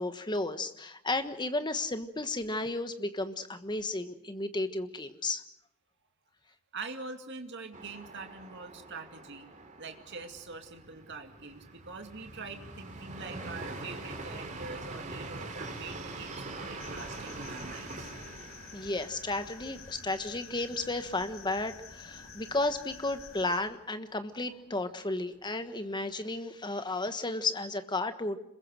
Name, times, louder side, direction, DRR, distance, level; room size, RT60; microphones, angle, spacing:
voice 1, 0.0-5.4 18.7-28.4, left 2 dB, 20° left, 9 dB, 1.3 m, -33 dB
voice 2, 6.7-9.5 9.8-18.1, right 4 dB, 50° right, 5 dB, 2.4 m, -44 dB
sound 1, 7.7-21.4 21.8-21.9 22.2-22.8, right 2 dB, 35° right, 3.3 m, -44 dB
sound 2, 16.8-23.6, left 5 dB, 65° left, 2.9 m, -49 dB
26.5 x 22.0 x 6.5 m, 0.79 s
head